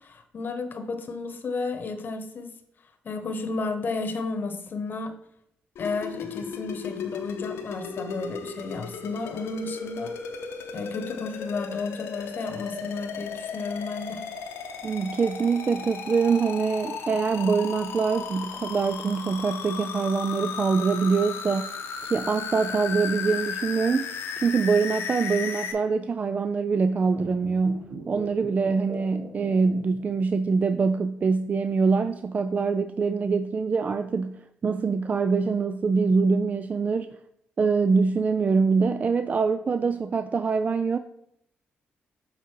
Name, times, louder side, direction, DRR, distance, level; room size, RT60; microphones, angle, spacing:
voice 1, 0.0-2.5 3.0-5.1 5.8-10.1 10.7-14.2, left 3 dB, 50° left, 7 dB, 1.0 m, -32 dB
sound 1, 5.8-25.7, left 6 dB, 80° left, 0.9 m, -35 dB
voice 2, 14.8-21.7 22.0-37.2 37.6-41.0, right 4 dB, 35° right, 10 dB, 0.3 m, -24 dB
sound 2, 27.1-30.5 30.7-30.8, right 3 dB, 80° right, 1.6 m, -40 dB
7.3 x 3.8 x 4.6 m, 0.74 s
cardioid pair, 80°, 4 cm